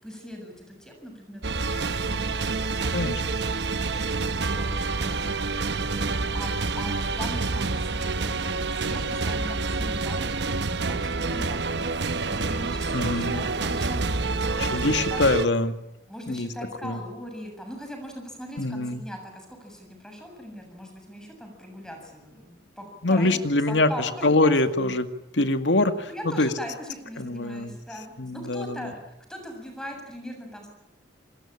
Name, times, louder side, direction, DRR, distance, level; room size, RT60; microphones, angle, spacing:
voice 1, 0.0-3.1 3.7-5.4 5.8-15.2 16.1-24.6 26.1-29.0 29.3-30.7, equal, 5° left, 3 dB, 7.3 m, -40 dB
sound 1, 1.4-15.5, right 3 dB, 65° right, 1.0 m, -27 dB
voice 2, 12.9-13.4 14.6-15.8 16.3-16.5 16.8-17.0 18.6-19.0 23.0-25.1 25.3-26.5 27.2-27.8 28.2-28.9, left 2 dB, 80° left, 9 dB, 2.1 m, -24 dB
28.0 x 20.5 x 8.8 m, 0.87 s
head